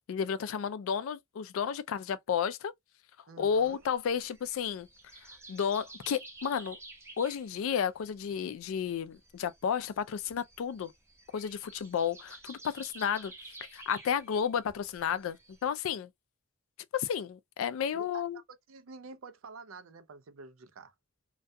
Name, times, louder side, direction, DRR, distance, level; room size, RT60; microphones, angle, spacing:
voice 1, 0.1-2.7 3.4-4.9 5.5-6.8 7.2-10.9 11.3-13.3 13.7-16.1 16.9-18.4, left 7 dB, 75° left, 0.3 m, -32 dB
voice 2, 3.3-3.8 18.0-18.4 18.7-20.9, right 3 dB, 75° right, 0.5 m, -48 dB
sound 1, 3.6-15.7, right 2 dB, 10° right, 0.5 m, -52 dB
2.3 x 2.2 x 2.6 m
head